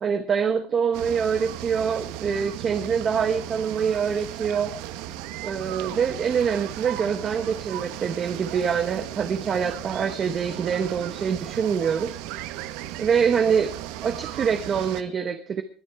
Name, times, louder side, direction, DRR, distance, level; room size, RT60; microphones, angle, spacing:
voice 1, 0.0-4.8 5.4-12.1 13.0-13.7 14.0-15.6, right 7 dB, 30° right, 9 dB, 1.0 m, -25 dB
sound 1, 0.9-15.0, right 13 dB, 75° right, 1.1 m, -36 dB
21.0 x 10.0 x 4.7 m, 0.42 s
cardioid pair, 160°, 0 cm